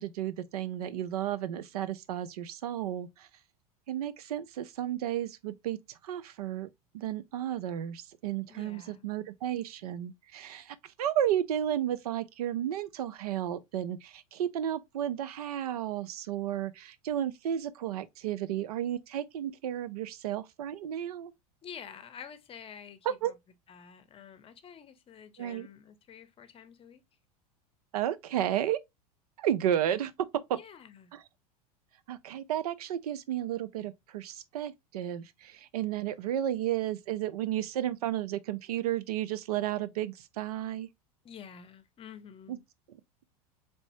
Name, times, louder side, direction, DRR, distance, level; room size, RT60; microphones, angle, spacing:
voice 1, 0.0-3.3 3.9-21.3 23.2-23.3 25.4-25.7 27.9-28.8 29.4-30.1 30.5-30.6 31.1-31.2 32.1-40.9 42.5-42.6, right 11 dB, 75° right, 0.5 m, -33 dB
voice 2, 8.5-9.1 21.6-23.0 23.2-23.3 23.7-27.0 30.5-31.1 41.2-42.6, left 7 dB, 30° left, 0.7 m, -49 dB
4.0 x 3.4 x 2.7 m
hypercardioid pair, 95°, 20 cm